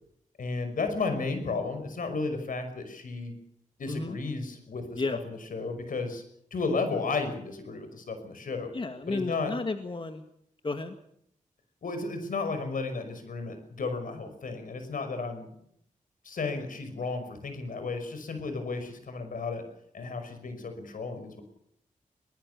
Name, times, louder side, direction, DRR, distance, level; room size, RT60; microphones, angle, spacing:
voice 1, 0.4-3.3 3.8-6.2 6.5-8.7 9.1-9.5 11.8-15.5 16.2-19.6 19.9-21.4, left 4 dB, 80° left, 8 dB, 5.7 m, -33 dB
voice 2, 3.9-4.2 5.0-5.2 8.7-10.2 10.6-11.0, left 3 dB, 40° left, 7 dB, 2.0 m, -32 dB
22.5 x 20.0 x 6.9 m, 0.71 s
cardioid pair, 70°, 14 cm